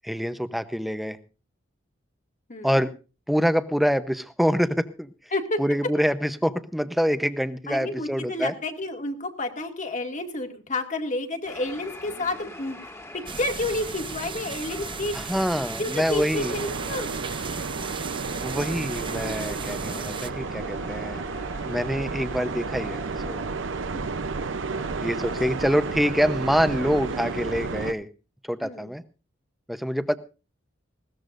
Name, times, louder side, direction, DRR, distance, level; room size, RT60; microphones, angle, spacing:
voice 1, 0.0-1.2 2.6-2.9 3.3-5.1 5.6-8.5 15.1-16.6 18.4-21.2 21.7-23.0 23.3-23.4 25.0-28.1 28.4-29.0 29.7-30.2, equal, ahead, 11 dB, 0.8 m, -25 dB
voice 2, 7.7-15.3 15.8-17.1 23.9-24.0 28.6-28.9, left 2 dB, 40° left, 4 dB, 2.1 m, -30 dB
sound 1, 11.5-27.1, left 1 dB, 15° left, 1.9 m, -44 dB
sound 2, 13.3-20.3, right 5 dB, 25° right, 0.7 m, -36 dB
sound 3, 16.3-27.9, right 4 dB, 80° right, 0.7 m, -32 dB
20.0 x 16.5 x 2.6 m, 0.33 s
head